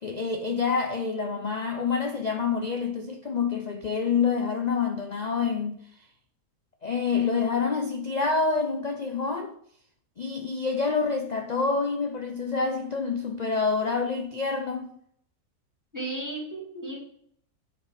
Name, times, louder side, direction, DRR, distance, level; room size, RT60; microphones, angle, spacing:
voice 1, 0.0-5.8 6.8-9.5 10.2-14.9, left 5 dB, 70° left, 0.4 m, -27 dB
voice 2, 15.9-17.0, right 2 dB, 10° right, 2.9 m, -34 dB
8.4 x 4.7 x 5.2 m
omnidirectional pair, 1.6 m